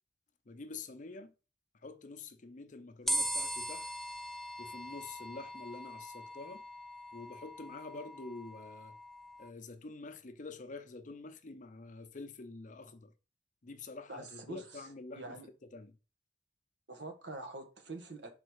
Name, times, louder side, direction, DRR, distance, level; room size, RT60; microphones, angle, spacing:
voice 1, 0.5-1.3 1.8-3.9 4.6-6.6 7.1-9.0 9.4-13.1 13.6-15.4 15.7-16.0, left 3 dB, 45° left, 0.7 m, -47 dB
sound 1, 3.1-9.5, equal, ahead, 0.3 m, -40 dB
voice 2, 14.1-15.5 16.9-18.3, right 2 dB, 85° right, 1.4 m, -45 dB
5.4 x 4.0 x 4.8 m
head